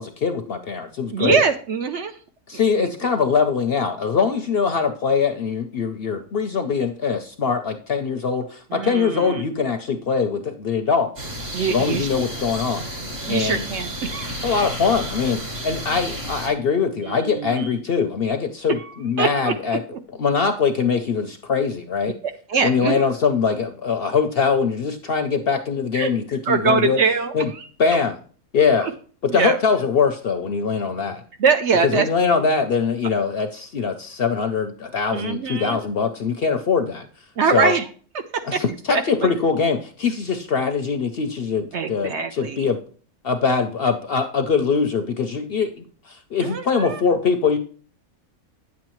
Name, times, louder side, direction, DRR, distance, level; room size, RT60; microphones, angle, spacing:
voice 1, 0.0-1.4 2.5-11.1 11.7-12.9 13.3-13.6 14.4-19.8 20.2-22.1 22.6-27.0 27.3-27.5 27.8-28.2 28.5-28.9 29.2-31.2 31.8-37.1 37.5-37.7 38.5-42.8 43.2-45.7 46.1-47.6, left 5 dB, 55° left, 7 dB, 0.7 m, -22 dB
voice 2, 1.1-2.2 2.8-2.9 8.7-9.4 11.5-12.1 13.3-14.3 17.1-17.8 18.7-18.9 19.2-20.0 22.5-23.0 25.9-26.1 26.5-27.7 28.8-28.9 29.3-29.6 31.4-32.1 35.1-35.8 37.4-37.9 38.3-38.6 38.9-39.3 41.7-42.7 46.4-47.0, right 5 dB, 60° right, 7 dB, 0.8 m, -23 dB
sound 1, 11.2-16.5, right 1 dB, 45° right, 1.8 m, -31 dB
9.4 x 7.3 x 3.0 m, 0.43 s
omnidirectional pair, 1.5 m